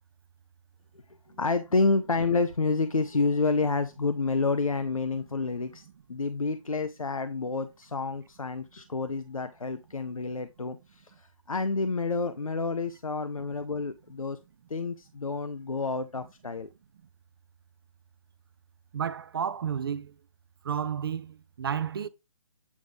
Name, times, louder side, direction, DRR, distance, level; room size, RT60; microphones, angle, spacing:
voice 1, 1.4-14.4 14.7-16.7, left 3 dB, 90° left, 0.6 m, -29 dB
voice 2, 18.9-20.1 20.6-22.1, right 8 dB, 45° right, 0.4 m, -31 dB
8.4 x 3.8 x 3.4 m
figure-of-eight pair, 140°, 17 cm